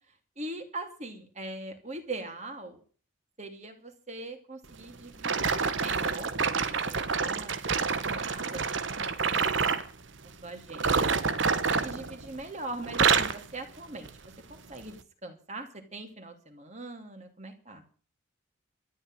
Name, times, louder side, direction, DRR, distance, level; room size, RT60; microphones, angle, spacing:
voice 1, 0.1-2.8 3.4-7.6 8.0-9.9 10.2-11.1 11.8-17.8, right 2 dB, 35° right, 5 dB, 2.9 m, -42 dB
sound 1, 5.2-9.9 10.7-12.5 12.8-13.4 14.0-14.3 14.9-15.0, right 5 dB, 65° right, 1.1 m, -27 dB
13.5 x 8.8 x 8.9 m, 0.41 s
head